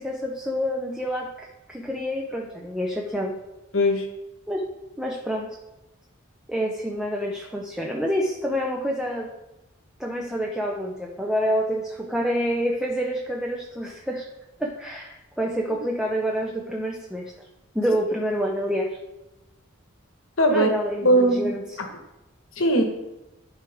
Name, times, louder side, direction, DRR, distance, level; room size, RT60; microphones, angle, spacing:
voice 1, 0.0-3.4 4.5-4.7 5.0-5.6 6.5-9.3 10.0-14.3 14.6-17.3 17.7-19.0 20.5-21.8, equal, 5° right, 0 dB, 0.6 m, -27 dB
voice 2, 3.7-4.1 20.4-20.7 21.0-21.9 22.6-22.8, equal, 70° left, 4 dB, 1.3 m, -20 dB
11.5 x 4.8 x 3.5 m, 0.97 s
head